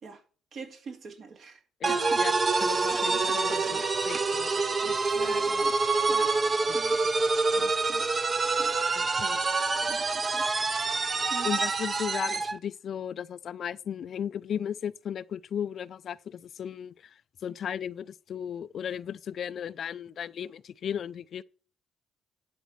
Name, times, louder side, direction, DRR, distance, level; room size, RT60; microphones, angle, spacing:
voice 1, 0.5-1.6 1.9-2.2 2.9-3.9 5.1-5.8 6.1-6.4 6.7-7.0 7.9-8.1 8.6-8.7 9.8-10.5 11.3-11.5, right 5 dB, 50° right, 2.1 m, -44 dB
voice 2, 1.8-2.3 2.6-5.4 6.7-6.8 7.3-7.7 9.0-9.4 11.4-21.4, left 8 dB, 50° left, 0.4 m, -36 dB
sound 1, 1.8-12.6, right 3 dB, 30° right, 0.8 m, -26 dB
11.5 x 5.2 x 6.0 m
cardioid pair, 120°, 0 cm